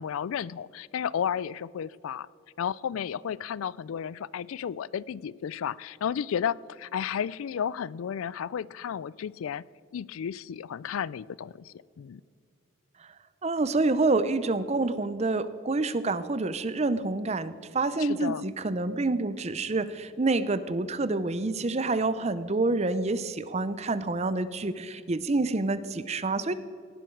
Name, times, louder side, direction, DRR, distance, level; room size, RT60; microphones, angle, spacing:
voice 1, 0.0-2.3 2.6-9.6 9.9-12.2 18.0-18.4, left 8 dB, 85° left, 22 dB, 0.3 m, -33 dB
voice 2, 13.4-26.5, right 3 dB, 30° right, 14 dB, 0.6 m, -27 dB
18.5 x 11.0 x 4.6 m, 2.4 s
head